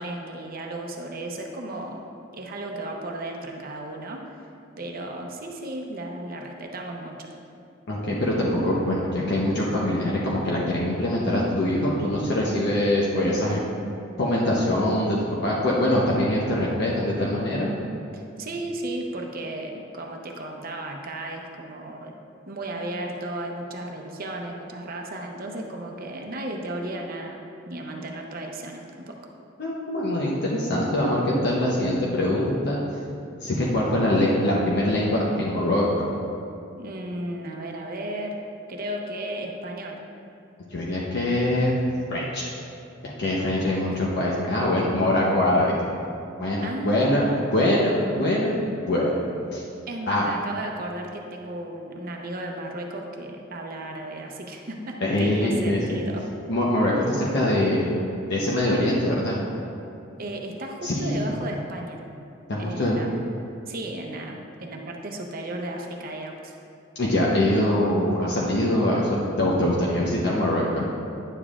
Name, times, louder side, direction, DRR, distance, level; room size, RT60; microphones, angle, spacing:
voice 1, 0.0-2.0 2.3-4.4 4.8-7.3 18.1-22.1 22.5-29.2 36.8-38.4 38.7-40.0 46.6-47.4 49.9-56.2 60.2-62.0 62.6-63.1 63.7-66.5, right 1 dB, 45° right, 1 dB, 0.7 m, -34 dB
voice 2, 7.9-13.6 14.2-15.2 15.4-17.7 29.6-32.8 33.4-36.1 40.7-41.7 42.1-42.4 43.0-45.7 46.4-47.3 47.5-47.9 48.2-49.1 49.5-49.6 50.1-50.3 55.0-56.0 56.5-57.9 58.3-59.4 60.8-61.2 62.5-62.9 67.0-70.9, left 1 dB, 55° left, -4 dB, 0.8 m, -23 dB
9.8 x 7.0 x 2.4 m, 2.6 s
head